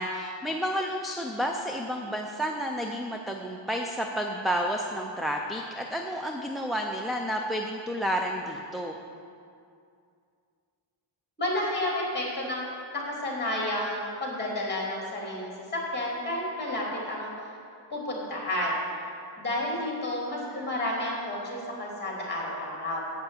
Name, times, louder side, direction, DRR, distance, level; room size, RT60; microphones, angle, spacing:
voice 1, 0.0-9.0, equal, ahead, 1 dB, 0.4 m, -31 dB
voice 2, 11.4-12.7 12.9-17.3 17.9-18.8 19.4-23.0, left 1 dB, 20° left, -3 dB, 2.8 m, -31 dB
7.8 x 6.7 x 8.2 m, 2.4 s
wide cardioid pair, 140°, 50 cm